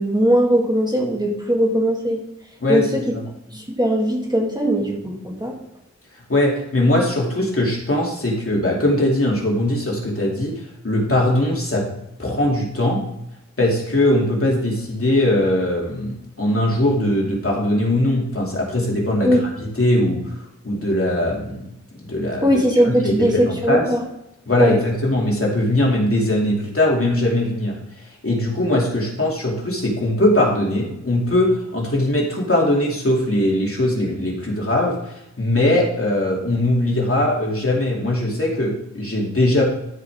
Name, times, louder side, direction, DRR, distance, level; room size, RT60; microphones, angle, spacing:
voice 1, 0.0-2.2 2.7-3.1 3.5-5.6 19.2-19.5 22.4-24.0 24.5-24.8, equal, 15° right, -1 dB, 2.0 m, -19 dB
voice 2, 2.6-3.2 6.3-11.9 12.2-13.0 13.6-20.4 20.6-22.5 22.8-23.9 24.5-27.8 28.2-39.6, left 1 dB, 50° left, -2 dB, 2.6 m, -20 dB
13.0 x 5.3 x 3.6 m, 0.83 s
wide cardioid pair, 60°, 29 cm